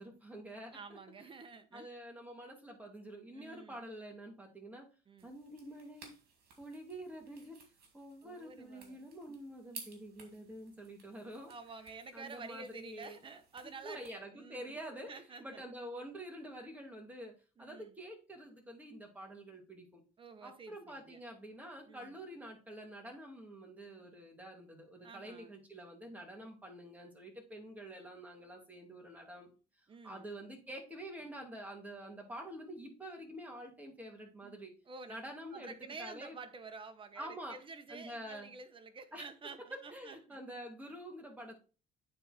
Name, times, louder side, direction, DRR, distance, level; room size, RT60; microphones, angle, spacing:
voice 1, 0.0-1.3 1.7-4.9 5.2-6.1 6.6-7.6 7.9-11.5 12.1-13.2 13.6-15.1 15.4-17.3 17.6-20.0 20.4-29.5 30.0-34.7 35.1-35.7 36.0-36.4 37.2-37.6 37.9-38.5 39.1-39.2 39.6-41.6, right 1 dB, 10° right, 2.6 m, -47 dB
voice 2, 0.7-1.9 3.3-3.8 5.1-5.3 8.2-9.4 11.4-14.8 15.1-15.7 17.6-18.0 20.2-21.2 21.9-22.2 25.0-25.5 29.9-30.3 34.4-35.1 35.5-40.4 40.8-41.0, right 4 dB, 30° right, 1.1 m, -50 dB
sound 1, 5.2-14.2, right 5 dB, 65° right, 2.6 m, -57 dB
9.1 x 4.2 x 4.3 m
cardioid pair, 110°, 17 cm